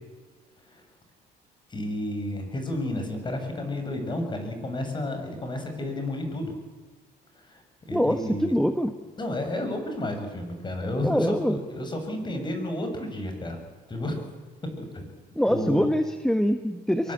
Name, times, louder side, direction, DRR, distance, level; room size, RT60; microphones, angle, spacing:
voice 1, 1.7-6.5 7.4-7.6 7.9-8.5 9.2-14.3 14.8-15.1 15.4-15.9 17.0-17.1, left 1 dB, 25° left, 6 dB, 6.5 m, -31 dB
voice 2, 7.9-8.9 11.0-11.6 15.3-17.1, equal, 5° left, 8 dB, 1.3 m, -24 dB
24.0 x 22.5 x 8.8 m, 1.3 s
cardioid pair, 110°, 17 cm